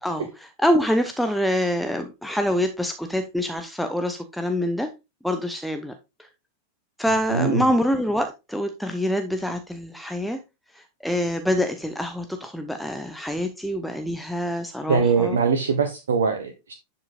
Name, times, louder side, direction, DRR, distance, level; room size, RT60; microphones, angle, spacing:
voice 1, 0.0-4.9 5.2-5.9 6.2-6.3 7.0-10.4 10.7-15.4, equal, ahead, 0.7 m, -25 dB
voice 2, 7.3-7.6 14.9-16.7, right 5 dB, 65° right, 0.9 m, -22 dB
10.5 x 5.7 x 2.5 m
figure-of-eight pair, 90°, 0 cm